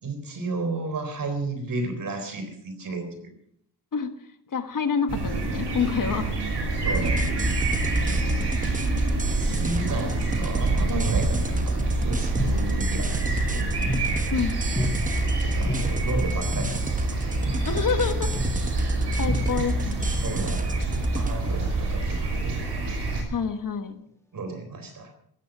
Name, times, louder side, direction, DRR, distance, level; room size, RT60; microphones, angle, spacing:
voice 1, 0.0-3.3 6.8-8.6 9.3-14.2 15.4-17.2 18.9-19.0 19.4-19.5 19.8-22.6 24.3-25.1, right 3 dB, 50° right, 7 dB, 4.0 m, -34 dB
voice 2, 4.5-6.6 14.3-14.6 17.6-18.3 19.2-20.1 23.3-24.0, left 6 dB, 50° left, 8 dB, 1.5 m, -27 dB
sound 1, 5.1-23.2, right 3 dB, 80° right, 5.9 m, -27 dB
sound 2, 6.9-21.4, right 1 dB, 20° right, 1.1 m, -29 dB
sound 3, 11.6-14.3 14.8-14.9 15.7-15.8 16.6-16.7 17.5-17.6 18.4-18.5 19.3-20.8 21.1-22.8, left 1 dB, 5° left, 1.6 m, -33 dB
16.5 x 13.5 x 6.0 m, 0.68 s
wide cardioid pair, 175°, 41 cm